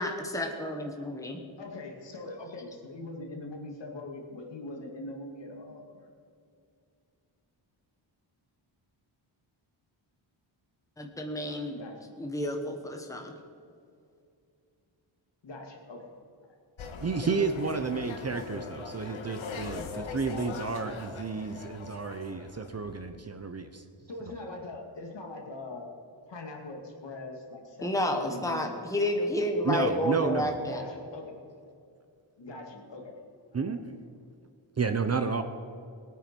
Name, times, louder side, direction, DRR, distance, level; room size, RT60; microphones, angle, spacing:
voice 1, 0.0-1.4 11.0-11.8 12.2-13.3 27.8-30.8, left 1 dB, 5° left, 3 dB, 1.2 m, -30 dB
voice 2, 1.6-6.1 11.7-12.2 15.4-16.1 16.9-17.1 24.1-26.0 26.3-28.8 30.6-31.4 32.4-33.2 33.5-33.7, left 2 dB, 65° left, 1 dB, 2.4 m, -42 dB
sound 1, 16.8-22.9, left 5 dB, 85° left, 1.5 m, -41 dB
voice 3, 17.0-23.8 29.6-30.5 33.5-33.8 34.8-35.4, right 4 dB, 35° right, 8 dB, 0.7 m, -31 dB
19.5 x 9.3 x 5.3 m, 2.4 s
wide cardioid pair, 170°, 47 cm